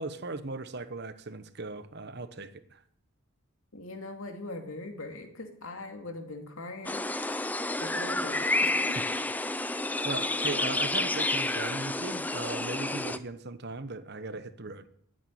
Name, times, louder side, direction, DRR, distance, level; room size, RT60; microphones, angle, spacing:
voice 1, 0.0-2.8 10.0-14.9, right 3 dB, 50° right, 12 dB, 1.0 m, -38 dB
voice 2, 3.7-7.0 7.8-9.0 10.2-10.3, left 2 dB, 70° left, 5 dB, 2.4 m, -41 dB
sound 1, 6.8-13.2, left 2 dB, 10° left, 0.5 m, -30 dB
13.0 x 9.1 x 9.3 m, 0.67 s
head